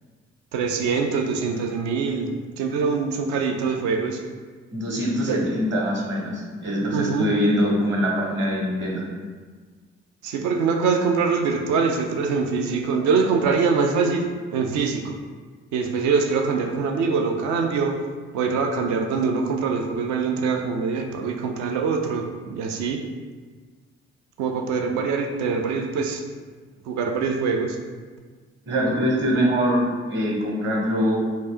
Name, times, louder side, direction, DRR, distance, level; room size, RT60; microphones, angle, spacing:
voice 1, 0.5-4.2 5.3-5.4 6.9-7.4 10.2-15.2 15.7-18.0 18.3-23.0 24.4-26.2 26.9-27.8, right 5 dB, 60° right, 4 dB, 0.5 m, -24 dB
voice 2, 4.7-9.0 28.7-31.2, equal, 35° right, -2 dB, 1.0 m, -23 dB
3.3 x 2.7 x 3.4 m, 1.5 s
figure-of-eight pair, 40°, 34 cm